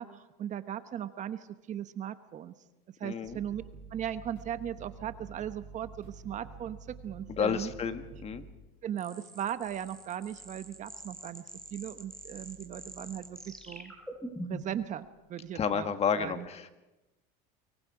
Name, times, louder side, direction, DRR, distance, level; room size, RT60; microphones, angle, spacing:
voice 1, 0.0-2.5 3.0-3.6 3.9-7.7 8.8-11.4 11.7-13.9 14.5-15.9 16.2-16.5, right 10 dB, 35° right, 11 dB, 1.1 m, -38 dB
voice 2, 3.0-3.4 7.3-8.4 15.5-16.7, left 7 dB, 30° left, 9 dB, 1.6 m, -31 dB
sound 1, 3.2-8.5, right 4 dB, 55° right, 6.6 m, -49 dB
sound 2, 9.0-14.8, equal, 5° left, 4.4 m, -45 dB
29.0 x 23.0 x 5.0 m, 1.0 s
supercardioid pair, 125°, 21 cm